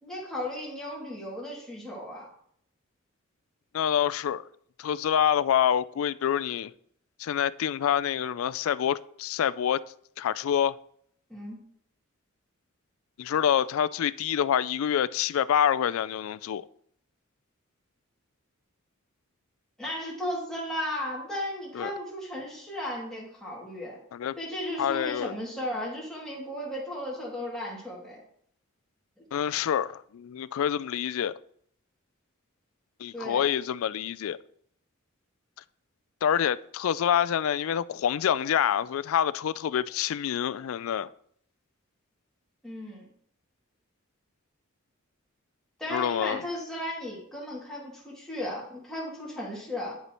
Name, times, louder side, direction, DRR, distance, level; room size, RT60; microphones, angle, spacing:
voice 1, 0.0-2.3 11.3-11.6 19.8-24.0 24.4-28.2 33.1-33.5 42.6-43.1 45.8-50.0, left 1 dB, 5° left, 2.4 m, -35 dB
voice 2, 3.7-4.4 4.8-6.7 7.2-9.8 10.2-10.8 13.2-16.6 21.7-21.9 24.1-24.3 24.8-25.3 29.3-31.3 33.0-34.4 36.2-41.1 45.9-46.4, left 9 dB, 80° left, 0.3 m, -26 dB
11.0 x 5.6 x 3.0 m
head